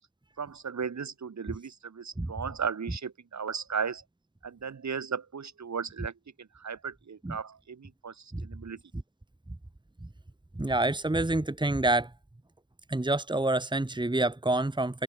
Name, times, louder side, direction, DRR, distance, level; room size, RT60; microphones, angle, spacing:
voice 1, 0.4-4.0 4.4-6.1 6.6-8.1 8.4-8.8, right 6 dB, 40° right, 5.4 m, -35 dB
voice 2, 10.5-12.1 12.9-15.0, right 2 dB, 10° right, 3.3 m, -27 dB
supercardioid pair, 65°, 45 cm